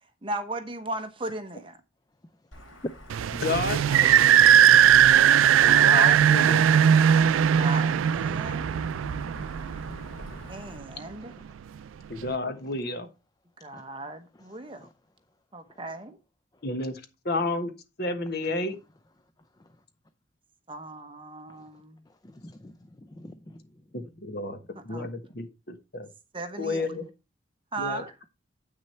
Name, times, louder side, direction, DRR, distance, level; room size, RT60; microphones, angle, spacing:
voice 1, 0.2-1.8 5.5-6.2 7.5-8.7 10.5-11.3 13.6-14.9 15.5-16.2 20.7-22.0 24.9-25.1 26.3-26.9 27.7-28.1, right 2 dB, 25° right, 1.0 m, -36 dB
Wind / Thunder / Rain, 2.5-10.8, equal, 85° left, 3.7 m, -44 dB
sound 1, 3.1-10.4, right 9 dB, 85° right, 0.3 m, -19 dB
voice 2, 3.4-4.4 5.6-6.6 12.1-13.1 16.6-17.0 17.2-17.7 18.0-18.8 23.9-24.6 24.8-26.1 26.6-27.0 27.8-28.3, left 2 dB, 50° left, 1.3 m, -31 dB
voice 3, 10.9-11.2 12.6-12.7 13.7-13.8 14.4-14.9 15.7-15.8 19.6-19.7 21.5-21.7 22.1-23.7 25.0-25.1, left 1 dB, 20° left, 0.4 m, -50 dB
8.4 x 6.4 x 4.3 m
head